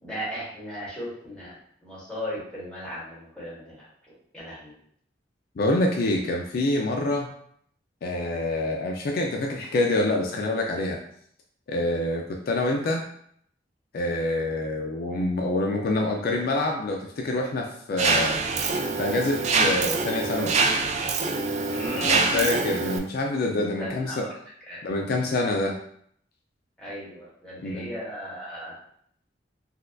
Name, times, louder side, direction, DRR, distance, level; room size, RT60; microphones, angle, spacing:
voice 1, 0.0-1.5 1.8-3.7 4.3-4.7 21.7-22.7 23.8-24.3 24.7-24.8 26.8-28.7, equal, 5° left, -9 dB, 1.4 m, -36 dB
voice 2, 5.6-7.3 8.0-11.0 11.7-13.0 13.9-18.4 19.0-20.6 22.0-24.3 24.8-25.8 27.6-27.9, left 2 dB, 55° left, 1 dB, 0.4 m, -26 dB
Mechanisms, 18.0-23.0, right 4 dB, 40° right, 0.3 m, -25 dB
4.1 x 2.3 x 2.5 m, 0.66 s
head